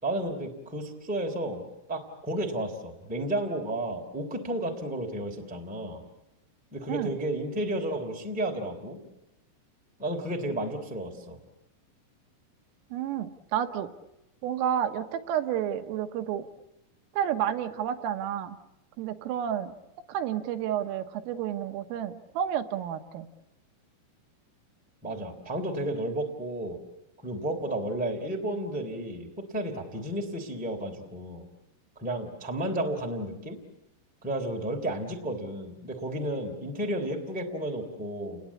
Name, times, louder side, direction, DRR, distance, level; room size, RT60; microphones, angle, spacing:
voice 1, 0.0-6.0 6.7-9.0 10.0-11.4 25.0-26.8 27.2-31.4 32.0-33.6 34.2-38.4, right 1 dB, 5° right, 3 dB, 1.9 m, -32 dB
voice 2, 12.9-13.9 14.4-16.5 17.1-18.6 19.0-19.8 20.1-23.3, right 10 dB, 80° right, 7 dB, 3.6 m, -30 dB
30.0 x 20.5 x 8.5 m, 0.92 s
omnidirectional pair, 5.9 m